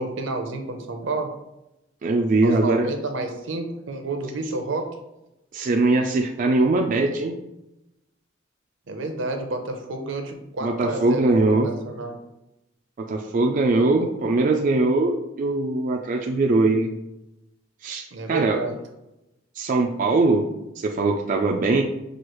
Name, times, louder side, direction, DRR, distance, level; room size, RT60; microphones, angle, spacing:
voice 1, 0.0-1.3 2.4-5.0 8.9-12.2 18.1-18.7, right 2 dB, 75° right, 5 dB, 0.6 m, -30 dB
voice 2, 2.0-2.9 5.5-7.4 10.6-11.7 13.0-16.9 17.8-18.6 19.6-20.5 20.8-21.8, right 2 dB, 45° right, 1 dB, 0.3 m, -21 dB
6.2 x 2.4 x 3.0 m, 0.92 s
head